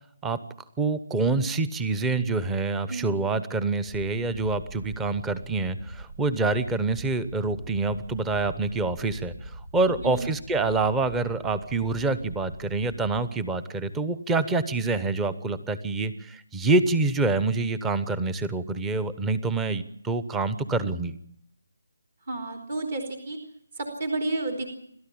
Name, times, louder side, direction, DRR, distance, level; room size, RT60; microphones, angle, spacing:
voice 1, 0.8-21.1, right 3 dB, 10° right, 14 dB, 0.9 m, -26 dB
sound 1, 3.8-13.2, right 1 dB, 80° right, 3.1 m, -43 dB
voice 2, 22.3-23.4 23.8-24.8, right 2 dB, 45° right, 2 dB, 3.9 m, -31 dB
28.5 x 13.0 x 8.6 m, 0.71 s
figure-of-eight pair, 155°, 0 cm